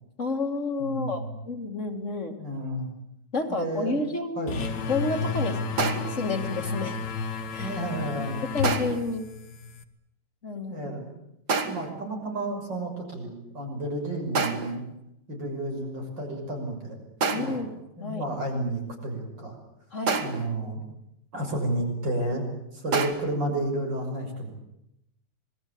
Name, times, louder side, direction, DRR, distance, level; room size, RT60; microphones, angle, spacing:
voice 1, 0.2-2.4 3.3-4.6 4.9-5.6 6.1-7.0 7.5-7.8 8.2-9.3 10.4-10.9 17.3-18.3 19.9-20.2, left 3 dB, 40° left, 5 dB, 2.6 m, -30 dB
voice 2, 0.8-1.4 2.4-2.9 3.5-4.0 4.4-4.7 7.6-8.4 10.7-11.1 11.7-14.8 15.3-17.0 17.3-17.6 18.0-19.6 20.2-20.8 21.3-22.4 22.7-24.5, right 1 dB, 90° right, 2 dB, 7.1 m, -31 dB
sound 1, 4.5-9.8, left 4 dB, 75° left, 2.0 m, -31 dB
sound 2, 5.8-6.3 8.6-9.1 11.5-12.0 14.3-14.9 17.2-17.7 20.1-20.6 22.9-23.1, right 4 dB, 65° right, 2.4 m, -28 dB
26.0 x 20.5 x 8.7 m, 0.83 s
omnidirectional pair, 1.9 m